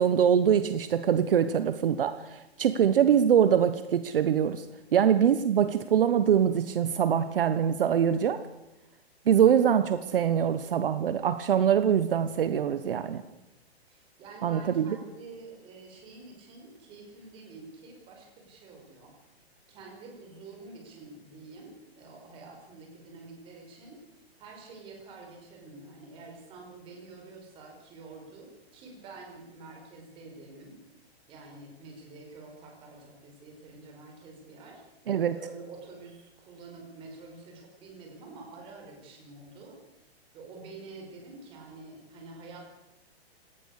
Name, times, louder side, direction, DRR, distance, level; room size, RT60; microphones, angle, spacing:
voice 1, 0.0-4.7 4.9-8.4 9.3-13.2 14.4-15.0 35.1-35.3, right 8 dB, 60° right, 12 dB, 1.3 m, -23 dB
voice 2, 13.9-19.1 19.7-24.0 24.4-30.8 31.3-34.8 35.3-39.8 40.3-42.7, right 3 dB, 15° right, 2 dB, 5.1 m, -48 dB
27.0 x 18.5 x 6.6 m, 0.97 s
hypercardioid pair, 175°, 32 cm